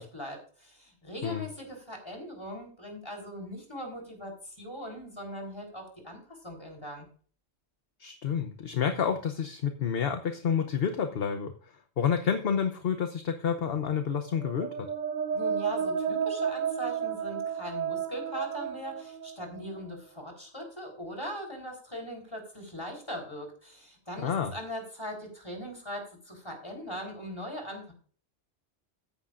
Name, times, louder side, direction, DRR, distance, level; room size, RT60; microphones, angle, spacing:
voice 1, 0.0-6.2 6.4-7.1 15.3-27.9, equal, 25° left, 2 dB, 4.0 m, -40 dB
voice 2, 8.0-11.5 12.0-14.9 24.2-24.5, left 7 dB, 60° left, 7 dB, 1.0 m, -29 dB
sound 1, 14.2-20.0, right 7 dB, 45° right, 1.0 m, -32 dB
14.5 x 9.9 x 2.5 m, 0.43 s
omnidirectional pair, 1.2 m